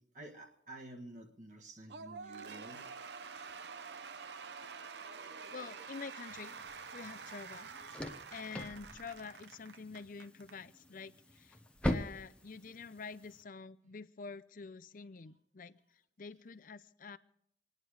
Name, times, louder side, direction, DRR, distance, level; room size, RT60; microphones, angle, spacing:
voice 1, 0.0-2.9, right 1 dB, 45° right, 1.5 m, -51 dB
Cheering / Applause / Crowd, 1.9-10.5, right 5 dB, 70° right, 0.7 m, -48 dB
voice 2, 5.5-6.5 6.9-7.7 8.3-11.6 11.8-15.8 16.2-17.2, left 4 dB, 50° left, 0.6 m, -47 dB
sound 1, 6.3-13.4, left 1 dB, 5° left, 0.9 m, -43 dB
25.5 x 9.6 x 4.8 m
head